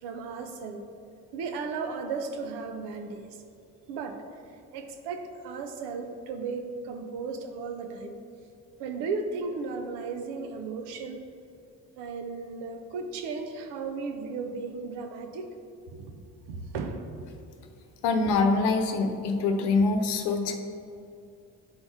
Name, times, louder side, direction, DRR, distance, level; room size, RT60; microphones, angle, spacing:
voice 1, 0.0-0.9 1.3-3.3 3.9-4.2 4.7-8.2 8.8-11.2 12.0-15.5 15.9-17.1, right 4 dB, 80° right, 6 dB, 0.7 m, -35 dB
voice 2, 18.0-20.6, left 3 dB, 75° left, 5 dB, 0.8 m, -24 dB
10.5 x 4.1 x 3.5 m, 2.6 s
hypercardioid pair, 40°, 40 cm